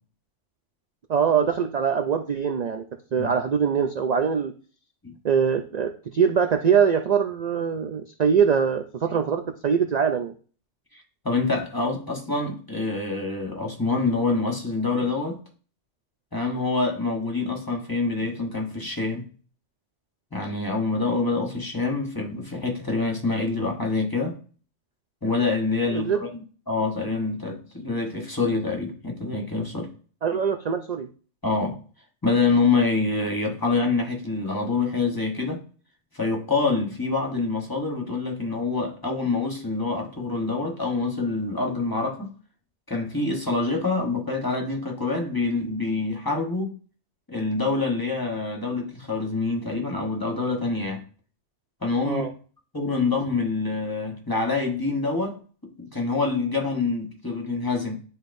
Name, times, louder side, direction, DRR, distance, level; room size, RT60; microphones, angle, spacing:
voice 1, 1.1-2.8 3.1-4.5 5.2-10.3 25.9-26.2 30.2-31.1 52.0-52.3, right 7 dB, 55° right, 0.5 m, -23 dB
voice 2, 10.9-15.4 16.3-19.3 20.3-24.4 25.2-26.4 26.7-29.9 31.4-31.8 32.2-35.6 36.1-42.3 42.9-46.8 47.3-51.0 51.8-52.3 52.7-58.0, left 3 dB, 20° left, 1.1 m, -26 dB
10.0 x 4.0 x 2.6 m
omnidirectional pair, 1.2 m